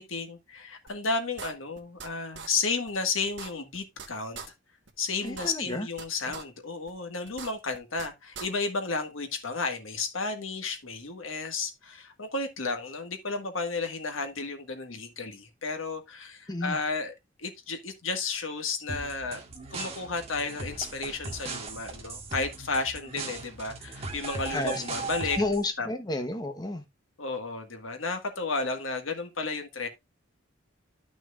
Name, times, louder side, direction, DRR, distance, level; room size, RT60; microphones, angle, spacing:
voice 1, 0.0-4.4 5.0-17.1 17.4-19.4 19.7-25.4 25.8-25.9 27.2-29.9, left 4 dB, 85° left, 1.7 m, -32 dB
sound 1, 0.9-1.0 1.4-2.1 2.3-2.5 2.9-3.0 3.3-4.1 4.3-4.5 4.9-5.0 5.3-6.0 6.3-6.4 6.9-7.0 7.3-8.1 8.3-8.5, right 6 dB, 60° right, 1.3 m, -41 dB
voice 2, 5.2-5.9 16.5-16.8 24.5-24.8 25.4-26.8, left 2 dB, 20° left, 0.9 m, -31 dB
sound 2, 18.9-25.7, right 3 dB, 30° right, 1.7 m, -38 dB
12.0 x 6.1 x 2.4 m
head